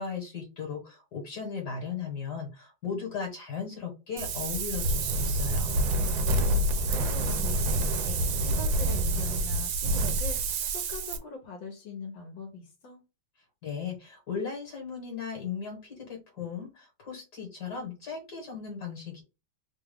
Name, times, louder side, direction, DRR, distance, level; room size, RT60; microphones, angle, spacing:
voice 1, 0.0-5.8 13.6-19.2, left 6 dB, 60° left, 1.7 m, -37 dB
Wind, 4.2-11.2, right 1 dB, 85° right, 1.4 m, -27 dB
voice 2, 6.8-13.0, left 4 dB, 80° left, 1.5 m, -42 dB
3.6 x 2.3 x 3.4 m
omnidirectional pair, 2.0 m